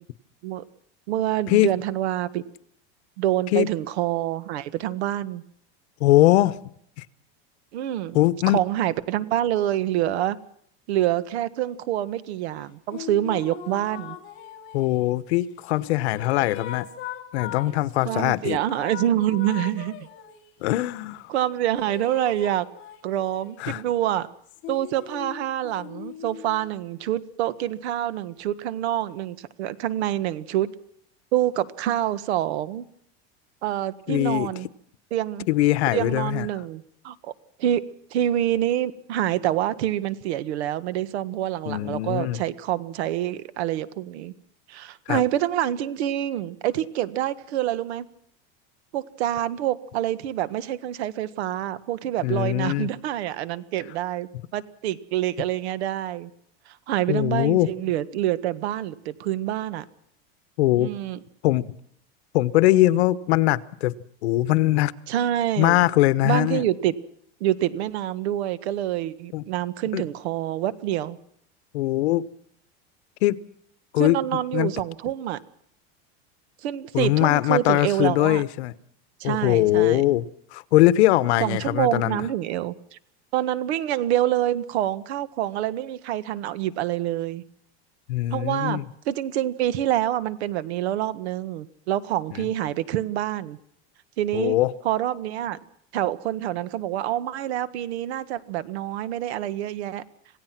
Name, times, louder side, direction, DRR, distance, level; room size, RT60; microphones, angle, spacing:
voice 1, 1.1-2.4 3.2-5.4 7.7-8.2 8.5-10.4 10.9-14.2 18.0-19.9 21.3-22.7 23.0-24.3 24.7-30.7 31.3-32.8 33.6-34.7 35.1-35.5 35.9-37.3 37.6-37.8 38.1-44.3 44.7-48.0 48.9-56.3 56.7-59.8 60.8-61.2 65.1-65.9 66.2-66.9 67.4-71.2 74.0-75.4 76.6-78.4 79.2-80.0 81.4-83.0 83.3-87.4 88.3-93.6 94.2-94.6 94.8-95.6 95.9-100.0, right 12 dB, 85° right, 15 dB, 1.7 m, -26 dB
voice 2, 6.0-6.6 7.0-7.1 8.1-8.6 14.7-16.9 17.3-18.6 20.6-21.3 23.6-23.8 34.1-34.5 35.5-36.5 41.6-42.4 45.1-45.2 52.2-52.9 57.1-57.7 60.6-60.9 61.4-61.7 62.3-63.9 64.2-64.9 65.6-66.6 69.3-69.5 69.9-70.0 71.7-72.3 73.2-73.4 73.9-74.7 76.9-78.7 79.2-80.2 80.5-82.3 88.1-88.8 92.3-92.5 94.3-94.7, left 16 dB, 85° left, 16 dB, 1.2 m, -21 dB
sound 1, 12.9-15.1 15.7-18.2 18.7-20.5 21.7-23.6 24.5-26.7, left 11 dB, 35° left, 3.5 m, -39 dB
27.0 x 17.0 x 6.0 m, 0.67 s
supercardioid pair, 170°, 32 cm